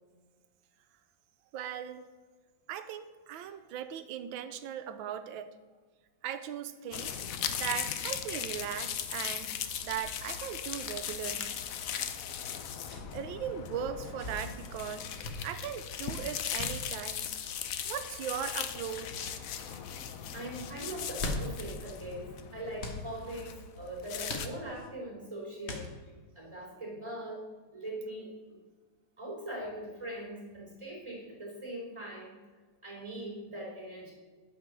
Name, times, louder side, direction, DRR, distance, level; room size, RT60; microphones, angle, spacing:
voice 1, 1.5-2.0 2.7-5.5 6.2-11.6 13.1-17.3 17.9-19.4, right 9 dB, 85° right, 10 dB, 1.4 m, -39 dB
sound 1, 6.9-24.5, left 8 dB, 65° left, 0.8 m, -38 dB
sound 2, 8.4-8.6 8.9-9.0 9.9-10.2 11.3-11.7 12.6-13.1 13.9-14.4 15.0-15.3 16.1-16.8 18.0-18.3 19.0-19.3 19.6-19.8 20.9-21.7 22.8-23.0 24.3-24.9 25.6-26.2, left 2 dB, 40° left, 1.3 m, -41 dB
voice 2, 20.3-25.9 26.3-27.4 27.7-28.3 29.2-32.3 32.8-34.1, right 1 dB, 15° right, -2 dB, 3.4 m, -41 dB
9.5 x 5.2 x 6.8 m, 1.4 s
omnidirectional pair, 2.1 m